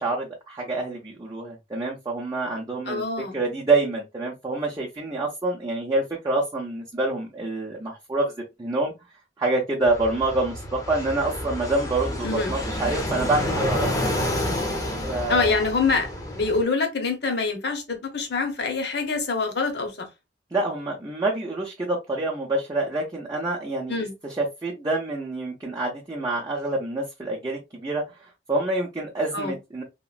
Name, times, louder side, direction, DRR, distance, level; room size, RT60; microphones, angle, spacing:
voice 1, 0.0-3.0 3.3-8.3 8.6-8.9 9.4-14.0 15.1-15.6 20.5-23.9 24.2-29.8, right 2 dB, 20° right, 0.5 m, -27 dB
voice 2, 2.9-3.4 12.2-12.5 15.3-20.1 23.9-24.1 29.3-29.6, left 4 dB, 60° left, 0.8 m, -25 dB
Fixed-wing aircraft airplane, 9.8-16.6, left 1 dB, 20° left, 0.7 m, -29 dB
2.9 x 2.4 x 2.3 m
head